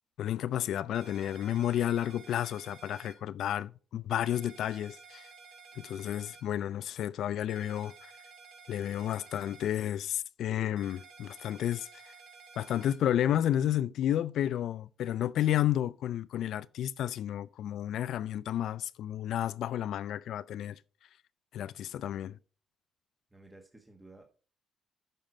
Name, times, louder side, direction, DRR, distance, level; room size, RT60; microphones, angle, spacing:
voice 1, 0.2-5.3 5.8-7.9 8.7-11.9 12.6-20.8 21.5-22.4, left 11 dB, 75° left, 0.4 m, -31 dB
sound 1, 0.9-3.1 4.2-6.4 7.5-9.7 10.8-13.0, right 5 dB, 80° right, 2.2 m, -53 dB
voice 2, 23.3-24.2, right 2 dB, 10° right, 1.5 m, -54 dB
9.1 x 5.7 x 4.3 m
cardioid pair, 90°, 0 cm